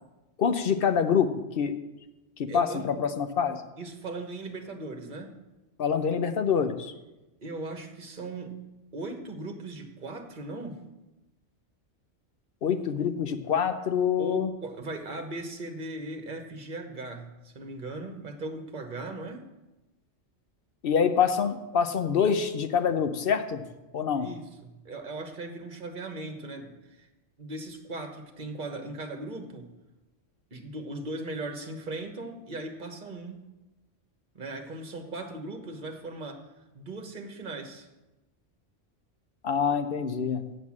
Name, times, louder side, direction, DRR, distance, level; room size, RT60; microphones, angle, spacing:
voice 1, 0.4-1.8 2.4-3.6 5.8-6.9 12.6-14.5 20.8-23.6 23.9-24.3 39.4-40.4, left 7 dB, 55° left, 9 dB, 0.8 m, -26 dB
voice 2, 2.5-3.0 3.8-5.3 7.4-8.6 8.9-10.8 14.2-19.5 24.2-27.1 27.4-29.7 30.5-33.4 34.3-36.4 36.7-37.9, right 2 dB, 45° right, 4 dB, 1.3 m, -38 dB
8.0 x 7.4 x 7.3 m, 1.0 s
omnidirectional pair, 1.2 m